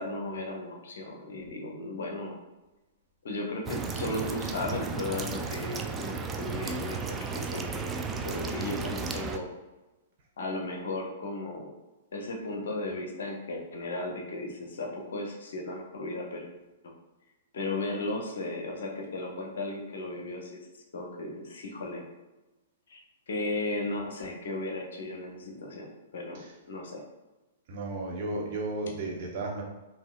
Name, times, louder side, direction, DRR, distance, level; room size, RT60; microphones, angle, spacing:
voice 1, 0.0-2.4 3.2-7.9 8.2-9.5 10.4-11.7 12.1-16.4 17.5-20.6 20.9-22.0 22.9-23.0 23.3-27.0, left 2 dB, 60° left, 1 dB, 0.8 m, -35 dB
sound 1, 3.7-9.4, right 5 dB, 15° right, 0.3 m, -34 dB
voice 2, 27.7-29.6, right 2 dB, 45° right, -2 dB, 0.9 m, -34 dB
5.4 x 2.7 x 2.5 m, 1.1 s
figure-of-eight pair, 110°, 0 cm